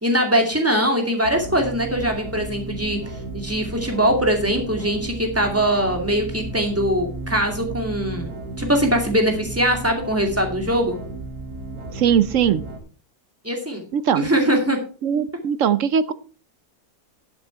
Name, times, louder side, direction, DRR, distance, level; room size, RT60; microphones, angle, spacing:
voice 1, 0.0-3.0 3.3-11.0 13.4-13.8 14.1-14.8, equal, 10° right, 3 dB, 2.3 m, -22 dB
sound 1, 1.2-12.8, right 2 dB, 90° right, 3.2 m, -34 dB
voice 2, 11.9-12.6 13.9-14.3 15.0-16.1, right 8 dB, 60° right, 15 dB, 0.9 m, -20 dB
11.5 x 8.2 x 4.5 m, 0.39 s
omnidirectional pair, 1.7 m